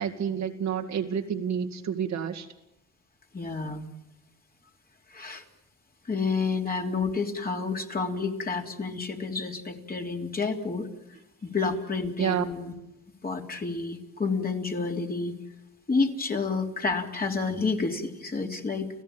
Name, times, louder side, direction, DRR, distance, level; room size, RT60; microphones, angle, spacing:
voice 1, 0.0-2.5 12.2-12.4, right 8 dB, 65° right, 5 dB, 2.3 m, -29 dB
voice 2, 3.3-3.9 5.1-5.4 6.1-10.9 11.4-12.7 13.2-15.4 15.9-18.9, left 4 dB, 30° left, 2 dB, 3.2 m, -29 dB
30.0 x 16.0 x 8.8 m, 0.89 s
cardioid pair, 90°, 30 cm